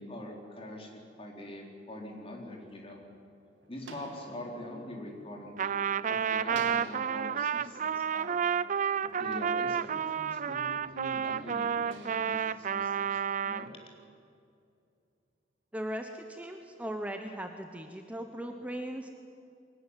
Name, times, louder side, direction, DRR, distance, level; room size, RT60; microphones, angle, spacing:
voice 1, 0.0-3.0 3.7-5.7 6.1-8.4 9.0-13.7, left 1 dB, 30° left, 0 dB, 4.0 m, -44 dB
sound 1, 2.3-6.0 6.5-10.2 10.8-13.5, right 3 dB, 80° right, 2.8 m, -54 dB
Trumpet, 5.6-13.7, right 7 dB, 45° right, 0.5 m, -31 dB
voice 2, 15.7-19.1, equal, 10° right, 5 dB, 1.1 m, -38 dB
22.5 x 18.5 x 9.8 m, 2.5 s
head